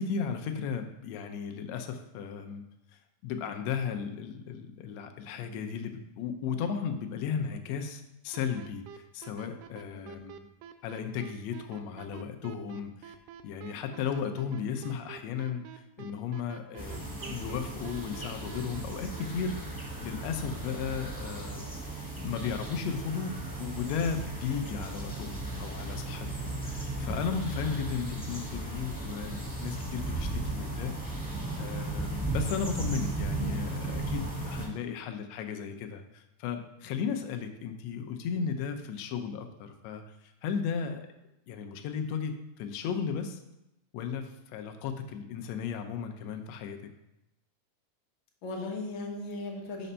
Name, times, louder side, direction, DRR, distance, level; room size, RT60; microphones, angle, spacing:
voice 1, 0.0-2.6 3.2-10.4 10.8-13.1 13.4-19.6 20.0-31.2 31.6-41.0 41.5-43.4 43.9-46.8, left 6 dB, 75° left, 6 dB, 1.7 m, -35 dB
sound 1, 8.3-19.3, right 9 dB, 85° right, 2.0 m, -47 dB
voice 2, 9.9-10.3 33.3-33.6 48.4-49.9, left 2 dB, 60° left, 1 dB, 1.3 m, -38 dB
sound 2, 16.8-34.7, right 2 dB, 5° left, 0.7 m, -36 dB
5.6 x 5.1 x 5.5 m, 0.89 s
omnidirectional pair, 3.5 m